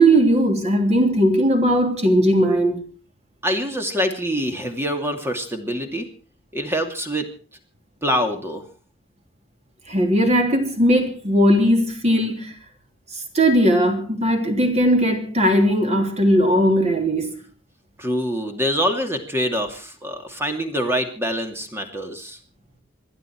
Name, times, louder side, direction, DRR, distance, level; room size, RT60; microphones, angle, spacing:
voice 1, 0.0-2.8 9.9-12.5 13.3-17.3, right 1 dB, 35° right, 3.2 m, -18 dB
voice 2, 3.4-6.1 6.5-7.3 8.0-8.7 18.0-22.4, equal, 10° right, 2.6 m, -25 dB
27.0 x 11.0 x 4.6 m
head